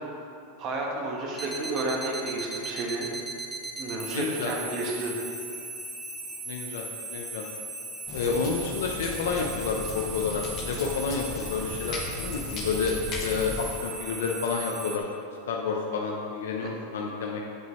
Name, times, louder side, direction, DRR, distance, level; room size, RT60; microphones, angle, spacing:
voice 1, 0.6-3.1 3.8-5.2 16.6-16.7, right 2 dB, 35° right, -1 dB, 1.2 m, -31 dB
sound 1, 1.3-15.0, right 2 dB, 5° right, 0.7 m, -38 dB
voice 2, 4.1-4.5 6.5-6.8 7.1-7.4 8.1-13.0 13.2-15.0 15.5-17.4, left 5 dB, 85° left, 0 dB, 0.7 m, -29 dB
sound 2, 8.1-13.7, left 2 dB, 30° left, 0.9 m, -37 dB
8.2 x 7.7 x 3.1 m, 2.5 s
supercardioid pair, 160°, 0 cm